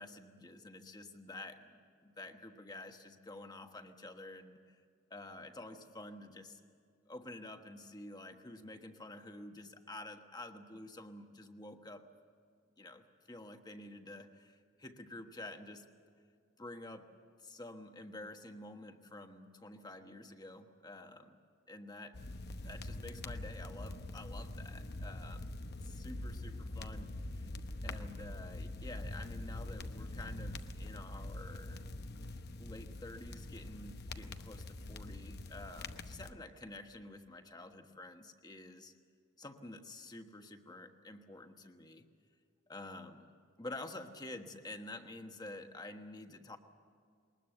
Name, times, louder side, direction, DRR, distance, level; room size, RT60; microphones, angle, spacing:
voice 1, 0.0-4.8 5.1-6.6 7.1-12.1 12.8-15.9 16.6-17.1 17.4-21.4 21.7-22.2 22.6-25.5 25.8-27.1 27.3-27.5 27.8-31.8 32.6-38.9 39.4-42.1 42.7-43.3 43.6-46.6, left 2 dB, 20° left, 6 dB, 1.3 m, -49 dB
sound 1, 22.1-36.3, left 2 dB, 55° left, 1.0 m, -44 dB
21.5 x 20.0 x 7.9 m, 2.2 s
head